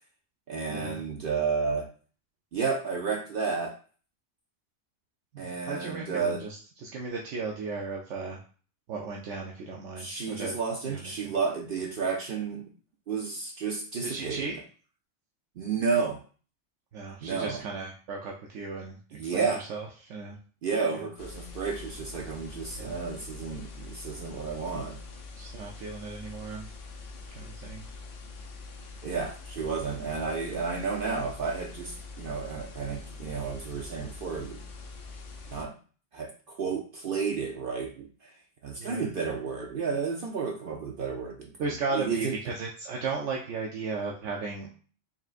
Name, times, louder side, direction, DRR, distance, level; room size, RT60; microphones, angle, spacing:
voice 1, 0.5-1.9 2.5-3.8 5.4-6.5 10.0-12.7 13.1-14.5 15.6-16.2 17.2-17.6 19.1-19.6 20.6-25.0 29.0-34.6 35.5-35.7 36.1-38.3 38.6-42.4, right 5 dB, 55° right, 1 dB, 0.7 m, -32 dB
voice 2, 5.3-8.4 8.9-10.5 10.9-11.0 14.0-14.6 16.9-20.4 20.9-21.0 22.7-23.0 25.4-26.7 27.4-27.9 38.8-39.1 41.6-44.8, right 4 dB, 75° right, -1 dB, 1.0 m, -35 dB
sound 1, 21.2-35.6, left 3 dB, 75° left, 1.0 m, -44 dB
4.2 x 3.6 x 2.4 m, 0.40 s
omnidirectional pair, 1.3 m